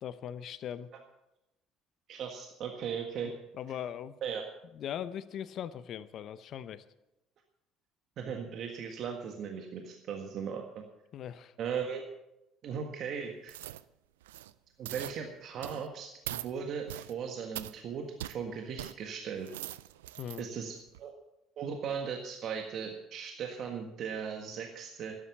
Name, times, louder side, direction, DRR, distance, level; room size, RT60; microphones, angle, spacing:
voice 1, 0.0-0.9 3.6-4.1 4.7-6.8 11.1-11.5 20.2-20.5, left 9 dB, 55° left, 14 dB, 0.8 m, -40 dB
voice 2, 2.1-3.3 4.2-4.4 8.2-10.6 11.6-12.0 12.6-13.6 14.8-19.5 20.4-21.1 21.6-25.2, right 7 dB, 55° right, 3 dB, 1.6 m, -38 dB
sound 1, 13.5-13.8 14.2-14.5 14.8-15.2 15.6-15.9 16.2-16.5 16.9-17.1 17.5-17.7 18.2-18.4 18.8-18.9 19.3-20.4 20.9-21.0, right 14 dB, 85° right, 0.4 m, -41 dB
12.5 x 10.0 x 7.1 m, 0.90 s
hypercardioid pair, 60°, 0 cm